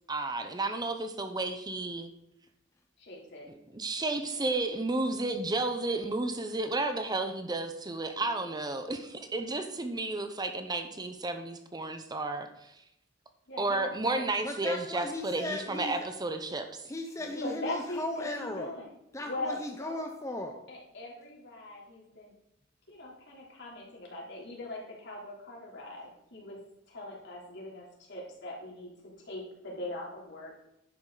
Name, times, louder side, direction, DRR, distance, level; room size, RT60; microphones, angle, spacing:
voice 1, 0.1-2.1 3.5-12.7 13.6-16.8, right 2 dB, 20° right, 7 dB, 0.7 m, -32 dB
voice 2, 3.0-3.5 4.3-4.5 13.5-14.2 17.3-18.8 19.2-19.9 20.7-22.3 22.9-26.6 26.9-30.5, left 1 dB, 60° left, -3 dB, 3.4 m, -41 dB
voice 3, 14.4-15.9 16.8-18.7 19.1-20.6, left 1 dB, 15° left, 3 dB, 0.8 m, -37 dB
11.0 x 9.4 x 3.9 m, 0.84 s
head